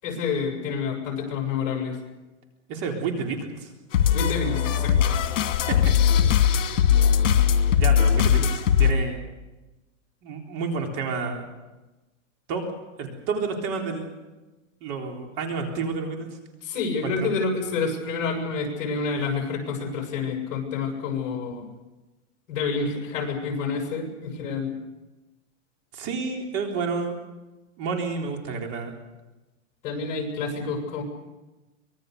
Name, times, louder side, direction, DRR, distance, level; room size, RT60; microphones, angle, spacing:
voice 1, 0.0-2.0 4.1-5.2 16.6-21.7 22.5-24.7 29.8-31.0, left 4 dB, 45° left, 2 dB, 7.5 m, -28 dB
voice 2, 2.7-3.7 5.7-5.8 7.1-7.3 7.8-9.2 10.2-11.5 12.5-12.6 13.0-14.1 14.8-16.3 17.0-17.3 25.9-27.1 27.8-28.9, right 5 dB, 35° right, 2 dB, 3.9 m, -30 dB
sound 1, 3.9-8.9, left 8 dB, 75° left, 2.7 m, -20 dB
25.0 x 21.5 x 6.8 m, 1.1 s
supercardioid pair, 165°, 38 cm